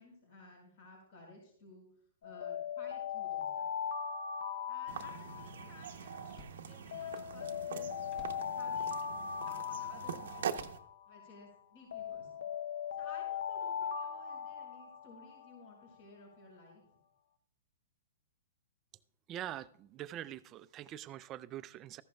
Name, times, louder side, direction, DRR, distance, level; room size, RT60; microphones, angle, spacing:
voice 1, 0.0-1.9 2.2-3.7 4.7-6.3 6.6-7.9 8.5-9.0 9.4-10.7 11.0-12.4 12.9-17.0, left 2 dB, 55° left, 0 dB, 5.0 m, -57 dB
Alarm, 2.2-6.4 6.9-11.4 11.9-15.7, left 8 dB, 80° left, 0.7 m, -39 dB
Slam, 2.6-2.8 3.3-3.4 4.7-5.5 5.9-7.4 8.1-8.5 9.3-9.7 10.4-11.5 12.1-12.4, left 3 dB, 30° left, 1.1 m, -60 dB
sound 1, 4.9-10.8, right 8 dB, 75° right, 0.7 m, -43 dB
voice 2, 19.3-22.0, right 12 dB, 25° right, 15 dB, 0.4 m, -44 dB
14.5 x 11.0 x 2.3 m, 0.63 s
hypercardioid pair, 145°, 0 cm